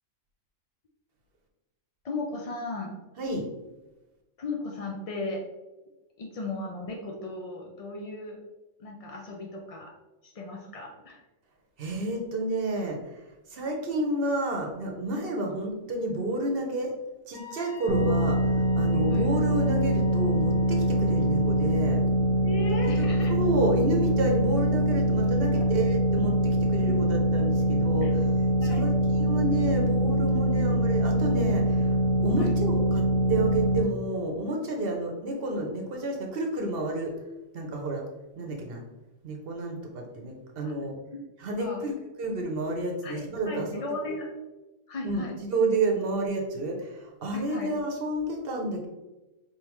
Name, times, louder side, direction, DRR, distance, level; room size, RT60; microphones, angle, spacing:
voice 1, 2.0-2.9 4.4-5.4 6.2-8.4 8.8-9.9 10.2-11.2 18.9-19.3 22.4-23.3 25.5-25.6 26.9-27.0 28.0-28.1 28.6-28.9 32.4-32.5 40.6-40.7 41.6-41.8 43.0-44.3 44.9-45.4 47.3-47.7, left 2 dB, 60° left, 0 dB, 0.3 m, -36 dB
voice 2, 11.8-13.2 13.5-16.9 17.3-18.4 18.7-22.0 23.0-23.1 23.3-28.3 28.6-32.0 32.2-37.2 37.5-38.0 38.4-38.8 39.2-41.0 41.4-44.2 45.0-48.9, right 1 dB, 50° right, 1 dB, 0.9 m, -30 dB
Wind instrument woodwind instrument, 17.3-21.7, left 6 dB, 35° left, 1.0 m, -47 dB
sound 1, 17.9-33.8, right 1 dB, 80° right, 1.0 m, -24 dB
4.4 x 3.5 x 3.0 m, 1.1 s
omnidirectional pair, 1.4 m